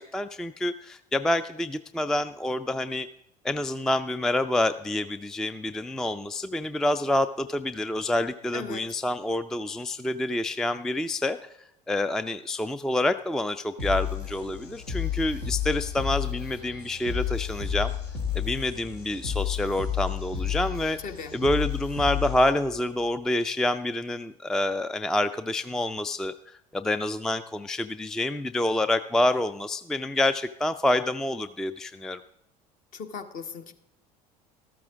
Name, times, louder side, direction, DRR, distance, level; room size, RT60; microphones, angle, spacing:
voice 1, 0.0-3.1 3.4-11.4 11.9-17.9 18.3-21.0 21.3-26.3 26.7-32.2, left 1 dB, 5° left, 13 dB, 0.3 m, -27 dB
voice 2, 8.5-9.0 21.0-21.4 32.9-33.7, left 5 dB, 45° left, 8 dB, 1.2 m, -38 dB
sound 1, 13.8-22.8, left 9 dB, 70° left, 2.2 m, -31 dB
13.5 x 13.0 x 3.6 m, 0.82 s
figure-of-eight pair, 65°, 20 cm